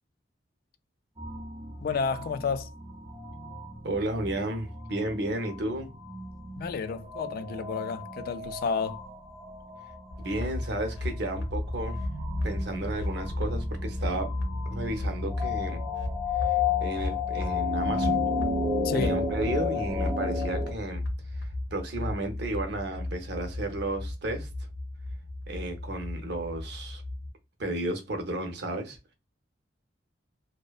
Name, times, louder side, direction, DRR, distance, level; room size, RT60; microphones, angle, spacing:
sound 1, 1.2-20.7, left 4 dB, 20° right, 0.4 m, -33 dB
voice 1, 1.8-2.7 6.6-9.0 18.8-19.2, left 5 dB, 55° left, 0.3 m, -31 dB
voice 2, 3.8-5.9 10.2-12.0 12.4-14.4 14.7-15.8 16.4-18.2 18.9-21.0 21.3-24.5 25.5-27.0 27.6-29.1, right 1 dB, 65° right, 0.7 m, -33 dB
sound 2, 10.1-27.3, left 1 dB, 75° left, 0.7 m, -34 dB
2.6 x 2.1 x 2.3 m
head